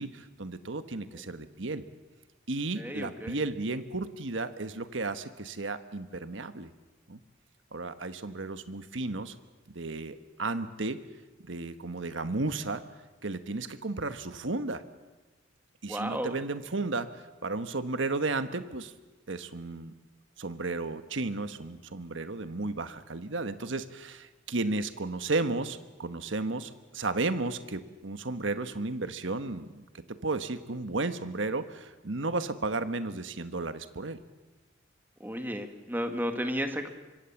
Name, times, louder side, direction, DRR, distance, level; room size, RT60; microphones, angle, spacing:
voice 1, 0.0-1.8 2.5-6.7 7.1-7.2 7.7-9.3 9.7-11.0 11.4-12.8 13.2-14.8 15.8-17.1 17.4-18.9 19.3-19.9 20.4-34.2, right 3 dB, 70° right, 10 dB, 1.4 m, -33 dB
voice 2, 2.8-3.4 15.9-16.3 35.2-36.9, equal, 10° right, 6 dB, 1.8 m, -33 dB
25.5 x 24.5 x 7.2 m, 1.2 s
head